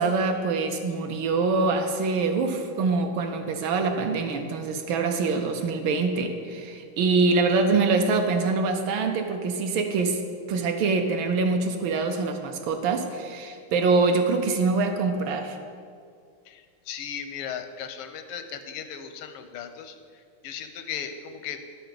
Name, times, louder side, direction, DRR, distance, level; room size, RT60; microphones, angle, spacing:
voice 1, 0.0-10.2 10.5-15.6, right 4 dB, 70° right, 5 dB, 1.3 m, -24 dB
voice 2, 16.5-20.0 20.4-21.6, left 8 dB, 85° left, 8 dB, 1.5 m, -36 dB
10.5 x 6.9 x 3.8 m, 2.2 s
omnidirectional pair, 2.4 m